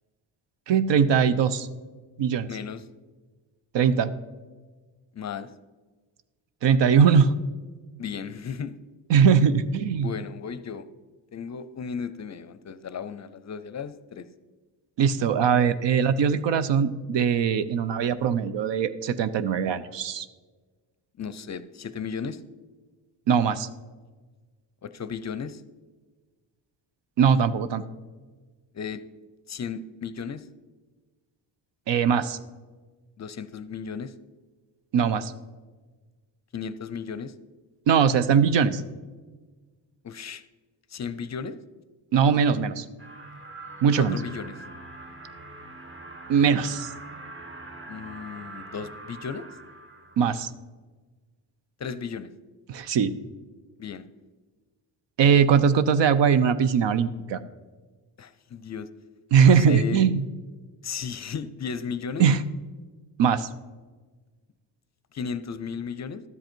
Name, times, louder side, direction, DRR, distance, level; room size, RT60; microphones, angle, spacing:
voice 1, 0.7-1.7 2.2-2.5 3.7-4.1 6.6-7.3 9.1-10.1 15.0-20.3 23.3-23.7 27.2-27.8 31.9-32.4 34.9-35.3 37.9-38.8 42.1-42.9 43.8-44.2 46.3-46.9 50.2-50.5 52.7-53.1 55.2-57.4 59.3-60.2 62.2-62.4 63.2-63.5, right 7 dB, 75° right, 13 dB, 0.7 m, -21 dB
voice 2, 2.5-2.8 5.1-5.5 8.0-8.7 10.0-10.9 11.3-14.3 21.2-22.4 24.8-25.6 28.7-29.0 29.5-30.5 33.2-34.1 36.5-37.3 40.0-40.4 40.9-41.6 44.0-44.5 47.9-49.5 51.8-52.3 53.8-54.1 58.2-58.9 59.4-60.0 60.8-62.3 65.1-66.2, left 6 dB, 40° left, 13 dB, 0.5 m, -35 dB
sound 1, 43.0-50.5, right 2 dB, 30° right, 1.2 m, -43 dB
12.5 x 7.9 x 4.4 m, 1.4 s
cardioid pair, 105°, 44 cm